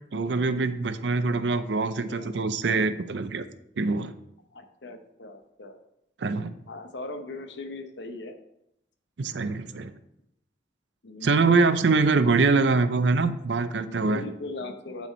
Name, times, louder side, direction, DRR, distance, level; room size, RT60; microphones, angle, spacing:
voice 1, 0.1-3.5 3.8-4.1 6.2-6.5 9.2-9.9 11.2-14.2, right 4 dB, 75° right, 12 dB, 0.5 m, -24 dB
voice 2, 1.8-2.3 4.5-5.8 6.7-8.4 11.0-11.5 13.8-15.1, left 2 dB, 75° left, 7 dB, 0.9 m, -39 dB
9.5 x 4.4 x 4.3 m, 0.79 s
head